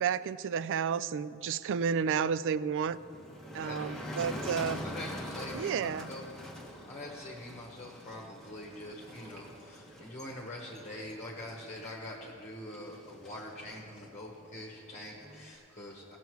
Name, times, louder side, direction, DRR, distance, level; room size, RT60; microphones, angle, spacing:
voice 1, 0.0-3.0 3.5-4.8 5.5-6.1, right 7 dB, 60° right, 16 dB, 0.3 m, -31 dB
sound 1, 1.7-12.5 13.5-15.4, right 1 dB, 80° right, 2.0 m, -59 dB
Motor vehicle (road), 2.9-15.6, equal, ahead, 1.0 m, -45 dB
voice 2, 3.6-4.5 4.8-6.2 6.6-16.2, left 1 dB, 30° left, -2 dB, 1.1 m, -44 dB
17.0 x 7.0 x 4.6 m, 2.5 s
head